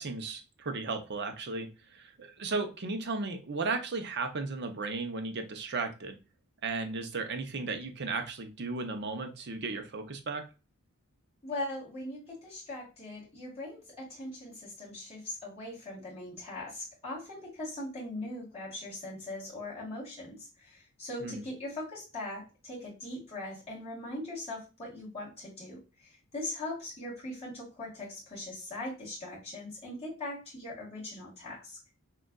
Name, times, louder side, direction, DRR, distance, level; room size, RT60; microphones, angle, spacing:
voice 1, 0.0-6.2 6.6-10.4 21.2-21.4, right 3 dB, 50° right, 7 dB, 0.7 m, -35 dB
voice 2, 11.4-31.8, left 1 dB, 25° left, -7 dB, 1.9 m, -40 dB
6.3 x 2.4 x 2.3 m, 0.30 s
head